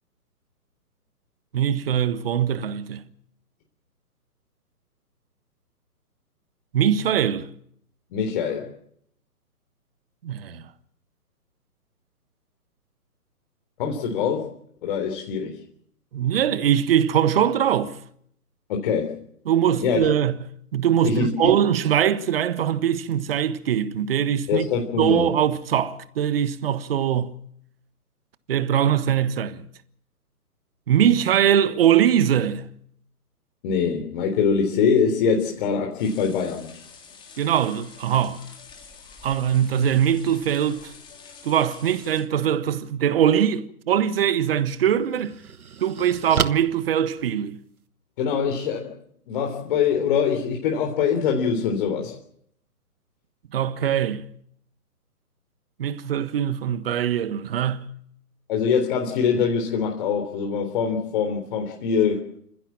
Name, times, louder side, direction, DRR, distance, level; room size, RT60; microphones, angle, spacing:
voice 1, 1.5-3.0 6.7-7.5 10.2-10.6 16.1-18.0 19.5-20.4 20.7-24.7 25.0-27.4 28.5-29.6 30.9-32.7 37.4-38.4 39.2-40.9 41.4-45.4 45.8-47.6 53.5-54.2 55.8-57.9, right 9 dB, 40° right, 1.4 m, -22 dB
voice 2, 8.1-8.7 13.8-14.5 14.8-15.6 18.7-19.2 19.8-20.0 21.0-21.5 24.5-25.3 33.6-36.7 48.2-49.0 49.3-52.2 58.5-62.3, left 6 dB, 35° left, 3.6 m, -23 dB
sound 1, 36.0-42.2, left 5 dB, 10° left, 3.3 m, -47 dB
sound 2, 44.1-44.3 44.8-47.9, right 6 dB, 65° right, 1.4 m, -31 dB
28.0 x 15.5 x 7.5 m
figure-of-eight pair, 135°, 46 cm